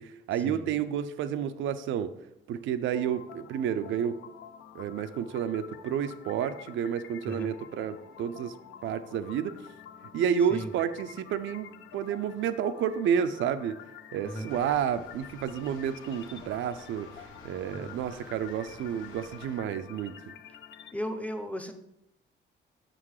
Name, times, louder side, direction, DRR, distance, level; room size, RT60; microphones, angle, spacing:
voice 1, 0.0-2.1 2.5-4.2 4.7-8.5 8.8-9.6 10.1-13.8 14.1-17.1 17.4-20.1, right 8 dB, 75° right, 10 dB, 0.4 m, -30 dB
sound 1, 2.9-20.9, left 9 dB, 65° left, 0.4 m, -49 dB
voice 2, 7.3-7.6 10.5-10.7 14.2-14.5 17.7-18.0 20.9-21.7, equal, 5° left, 7 dB, 0.6 m, -36 dB
sound 2, 14.5-19.6, left 3 dB, 80° left, 0.9 m, -51 dB
6.2 x 3.8 x 4.8 m, 0.86 s
cardioid pair, 90°, 20 cm